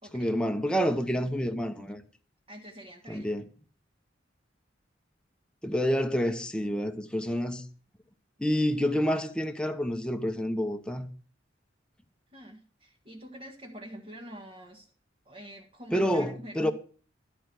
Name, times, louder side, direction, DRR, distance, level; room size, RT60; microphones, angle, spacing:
voice 1, 0.1-2.0 3.1-3.5 5.6-7.6 8.4-11.1 15.9-16.7, equal, 5° left, 0.8 m, -28 dB
voice 2, 2.5-3.3 12.3-14.9 15.2-16.7, equal, 35° right, 1.5 m, -45 dB
13.0 x 4.6 x 7.9 m
head